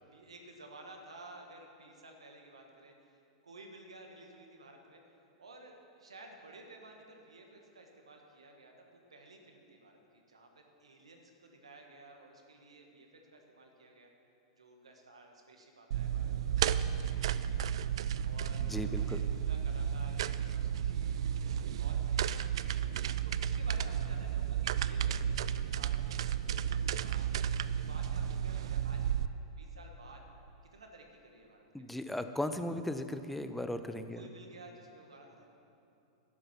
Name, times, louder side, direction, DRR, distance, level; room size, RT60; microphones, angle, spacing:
voice 1, 0.0-8.7 9.1-14.1 14.6-18.0 18.2-22.6 23.2-29.0 29.6-30.2 30.7-32.0 34.1-35.5, right 2 dB, 90° right, 2 dB, 1.5 m, -54 dB
sound 1, 15.9-29.3, right 9 dB, 70° right, 0.3 m, -33 dB
voice 2, 18.6-19.2 31.7-34.2, left 1 dB, 5° left, 9 dB, 0.6 m, -37 dB
11.5 x 9.0 x 5.9 m, 2.7 s
hypercardioid pair, 105°, 3 cm